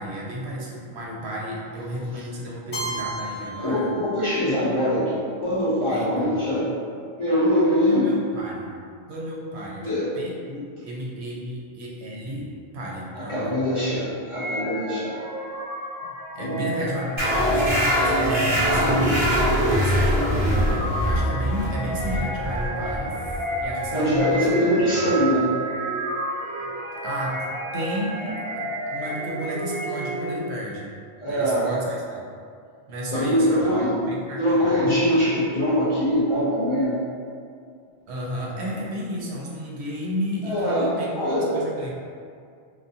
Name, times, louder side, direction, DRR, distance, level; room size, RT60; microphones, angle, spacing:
voice 1, 0.0-3.9 5.9-6.4 7.8-8.8 9.1-13.5 16.3-23.2 23.6-24.6 26.6-26.7 27.0-30.9 31.3-32.2 32.9-34.7 38.1-41.9, equal, 90° right, -4 dB, 0.8 m, -32 dB
Keyboard (musical), 2.7-4.7, right 1 dB, 60° left, 0.9 m, -34 dB
voice 2, 3.6-6.7 7.2-8.1 9.8-10.1 13.1-15.2 16.4-16.6 23.9-25.5 31.2-31.7 33.1-34.0 34.4-37.0 40.4-41.6, equal, 40° left, -10 dB, 0.5 m, -23 dB
sound 1, 14.3-30.5, right 1 dB, 60° right, 0.9 m, -31 dB
sound 2, 17.2-24.3, equal, 30° right, 0.7 m, -23 dB
2.4 x 2.2 x 2.6 m, 2.3 s
omnidirectional pair, 1.1 m